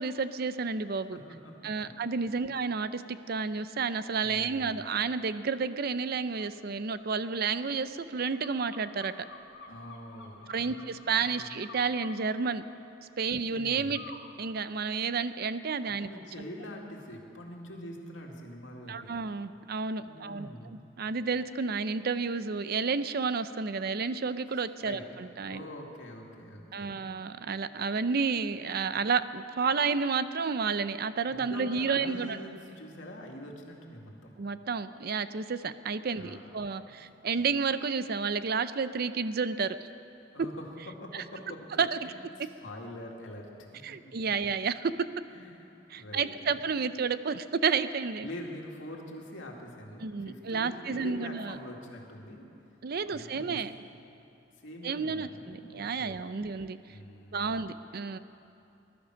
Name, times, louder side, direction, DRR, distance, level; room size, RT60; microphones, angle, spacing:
voice 1, 0.0-1.2 1.6-9.1 10.5-12.6 13.2-14.0 14.4-16.1 18.9-20.5 21.0-25.6 26.7-32.4 34.4-39.8 41.1-41.2 41.8-42.0 43.8-45.1 45.9-48.3 50.0-51.6 52.8-53.7 54.8-56.8 57.3-58.2, right 5 dB, 55° right, 13 dB, 0.5 m, -31 dB
voice 2, 1.1-1.5 1.8-1.9 2.4-2.5 4.2-4.8 9.7-11.5 13.2-14.0 15.8-19.2 20.0-20.8 24.5-25.0 25.3-27.1 31.3-34.3 36.1-36.5 36.8-36.9 37.3-37.5 40.3-40.7 41.0-44.5 45.3-46.7 48.2-52.5 53.0-53.8 54.6-56.5 56.8-57.6, left 1 dB, 90° left, 0 dB, 2.3 m, -45 dB
sound 1, 6.3-6.5 7.0-12.1 13.9-14.3 14.7-15.5, left 4 dB, 65° left, 2.2 m, -51 dB
19.5 x 12.0 x 6.3 m, 2.9 s
head